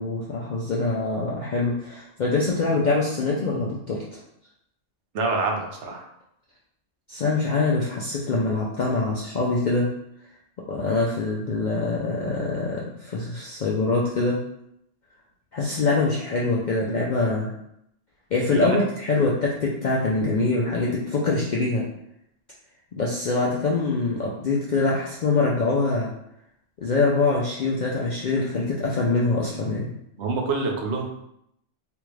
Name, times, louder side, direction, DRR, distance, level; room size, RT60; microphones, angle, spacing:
voice 1, 0.0-4.2 7.1-9.9 10.7-14.4 15.5-17.5 18.3-21.9 22.9-26.1 26.8-29.9, left 3 dB, 65° left, -4 dB, 0.4 m, -24 dB
voice 2, 5.1-6.1 18.5-18.8 30.2-31.1, right 3 dB, 70° right, 1 dB, 0.8 m, -26 dB
3.4 x 2.4 x 3.1 m, 0.78 s
omnidirectional pair, 1.3 m